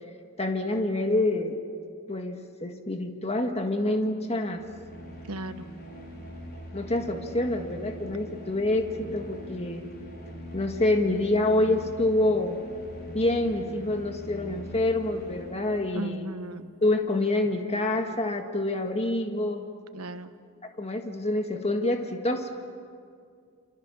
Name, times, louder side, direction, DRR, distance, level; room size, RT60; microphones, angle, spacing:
voice 1, 0.4-1.6 2.1-4.6 6.7-9.9 10.5-12.6 13.1-16.3 16.8-19.6 20.6-22.5, left 2 dB, 30° left, 5 dB, 1.7 m, -27 dB
sound 1, 4.4-16.1, equal, 45° left, 5.0 m, -42 dB
voice 2, 5.3-5.7 15.9-16.7 19.9-20.4, right 1 dB, 80° right, 10 dB, 1.2 m, -36 dB
28.0 x 28.0 x 7.1 m, 2.2 s
head